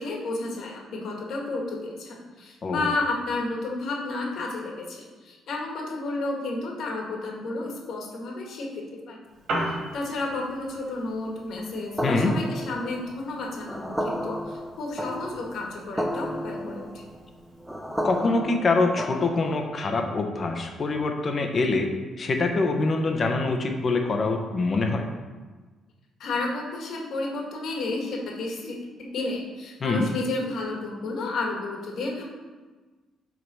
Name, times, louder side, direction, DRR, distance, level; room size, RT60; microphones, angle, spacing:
voice 1, 0.0-9.2 9.6-16.9 26.2-32.2, left 2 dB, 70° left, -1 dB, 1.7 m, -32 dB
Piano, 9.2-18.2, right 1 dB, 70° right, 2.4 m, -39 dB
voice 2, 12.0-12.3 18.0-21.9 22.2-25.1 29.8-30.1, left 3 dB, 45° left, 4 dB, 1.1 m, -24 dB
sound 1, 12.0-19.8, equal, 5° right, 0.7 m, -33 dB
6.3 x 3.9 x 6.2 m, 1.3 s
cardioid pair, 90°, 0 cm